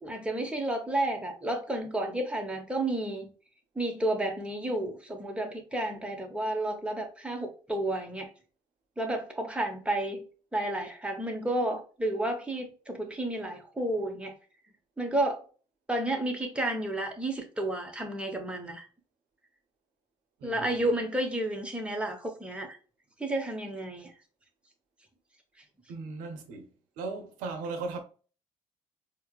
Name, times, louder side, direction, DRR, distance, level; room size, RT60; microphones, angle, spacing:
voice 1, 0.0-3.3 3.7-8.3 9.0-10.2 10.5-14.3 15.0-15.4 15.9-18.9 20.4-22.8 23.2-24.1, right 1 dB, 10° right, 1.2 m, -31 dB
voice 2, 20.4-21.0 25.9-26.7 27.0-28.0, right 3 dB, 70° right, 0.8 m, -37 dB
4.4 x 2.3 x 2.4 m
hypercardioid pair, 55°, 14 cm